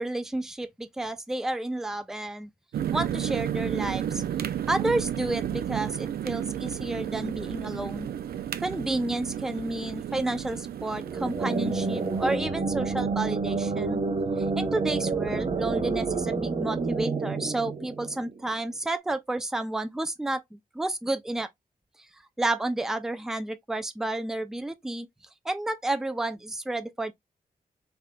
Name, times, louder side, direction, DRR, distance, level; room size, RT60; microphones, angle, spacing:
voice 1, 0.0-2.5 2.9-4.2 4.7-8.1 8.6-14.0 14.4-21.5 22.4-25.1 25.4-27.1, right 2 dB, 5° right, 0.4 m, -31 dB
sound 1, 2.7-12.4, right 10 dB, 90° right, 0.4 m, -32 dB
sound 2, 10.9-18.5, right 4 dB, 40° right, 0.7 m, -29 dB
3.7 x 3.4 x 2.2 m
wide cardioid pair, 145°, 15 cm